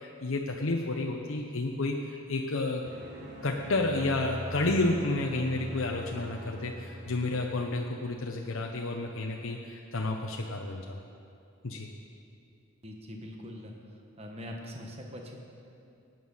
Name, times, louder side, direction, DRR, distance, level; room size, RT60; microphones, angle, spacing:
voice 1, 0.0-2.8 3.4-11.0 11.6-11.9, left 2 dB, 70° left, 1 dB, 0.8 m, -31 dB
sound 1, 2.8-7.9, equal, 55° right, 1.8 m, -42 dB
voice 2, 12.8-13.7 14.2-15.4, left 1 dB, 30° right, 1 dB, 1.3 m, -42 dB
16.0 x 9.3 x 5.6 m, 2.5 s
head